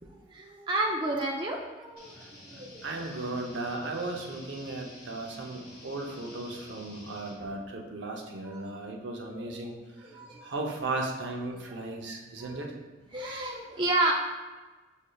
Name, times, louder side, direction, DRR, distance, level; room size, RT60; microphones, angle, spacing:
voice 1, 0.0-2.8 3.2-3.3 8.4-8.6 9.5-9.6 10.0-10.5 11.7-11.8 12.4-12.6 13.1-14.1, right 2 dB, 25° right, -1 dB, 0.4 m, -32 dB
sound 1, 2.0-7.3, left 1 dB, 50° left, 1.1 m, -50 dB
voice 2, 2.8-10.1 10.4-12.7, right 2 dB, 70° right, 1 dB, 0.6 m, -36 dB
6.3 x 3.5 x 2.3 m, 1.3 s
head